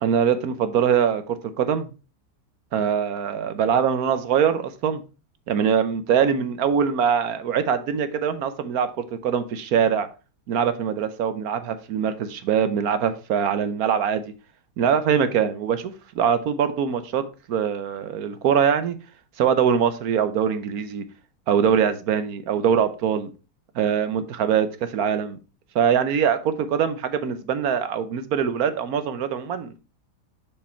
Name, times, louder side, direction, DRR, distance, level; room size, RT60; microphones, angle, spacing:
voice 1, 0.0-1.9 2.7-5.0 5.5-10.1 10.5-14.3 14.8-19.0 19.4-21.0 21.5-23.3 23.8-25.4 25.7-29.8, right 7 dB, 65° right, 1.1 m, -23 dB
7.0 x 5.3 x 4.3 m
omnidirectional pair, 1.8 m